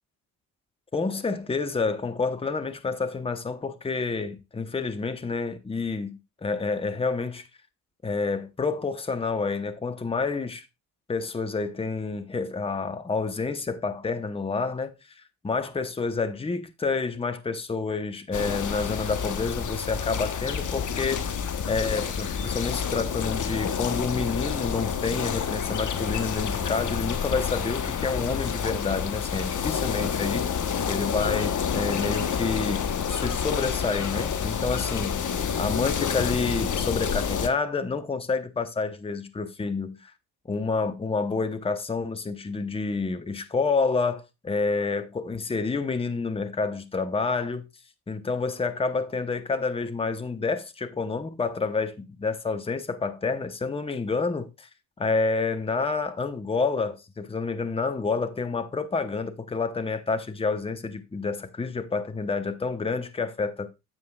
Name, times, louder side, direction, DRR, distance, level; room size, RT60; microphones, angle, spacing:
voice 1, 0.9-7.5 8.0-10.7 11.1-21.4 21.7-35.2 35.6-40.1 40.5-47.7 48.1-54.7 55.0-63.7, left 4 dB, 10° left, 0.9 m, -29 dB
sound 1, 18.3-37.5, left 7 dB, 35° left, 1.1 m, -29 dB
9.7 x 7.5 x 2.3 m
figure-of-eight pair, 50°, 50 cm